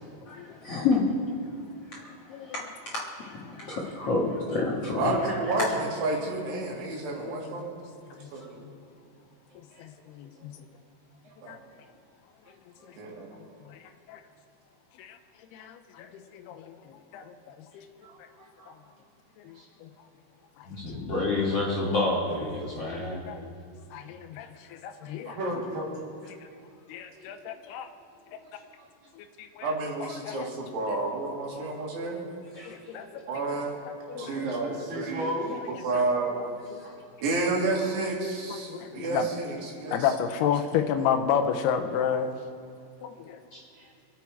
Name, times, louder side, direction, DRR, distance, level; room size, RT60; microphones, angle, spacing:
voice 1, 0.3-1.0 1.9-2.1 2.4-5.4 20.7-23.2 32.5-32.7 36.8-36.9 43.5-43.6, left 3 dB, 55° left, -4 dB, 1.7 m, -29 dB
voice 2, 4.9-7.7 8.3-8.6 11.4-11.6 13.0-13.3 29.6-32.2 33.3-33.8 34.2-35.3 35.8-36.3 37.2-40.0, right 3 dB, 85° right, -2 dB, 4.3 m, -30 dB
voice 3, 7.3-7.6 8.2-8.3 8.6-8.8 9.8-10.6 11.5-11.6 12.8-12.9 13.7-13.8 14.1-14.2 15.0-15.2 15.5-17.9 19.4-19.5 19.8-19.9 20.6-20.7 20.9-21.0 23.3-23.5 23.9-25.4 26.9-27.9 29.2-29.7 30.0-30.5 30.9-31.0 32.7-33.2 34.1-34.4 35.4-35.5 35.9-36.0 36.3-36.8 38.5-39.3 39.9-42.4 43.0-43.4, left 8 dB, 85° left, 6 dB, 2.7 m, -32 dB
voice 4, 12.5-12.9 18.0-18.9 19.5-19.7 23.7-23.8 25.3-25.9 27.1-27.6 28.1-28.5 34.1-35.9 36.8-36.9 43.7-43.9, right 1 dB, 60° right, -5 dB, 4.2 m, -36 dB
24.5 x 8.4 x 4.6 m, 2.4 s
omnidirectional pair, 4.7 m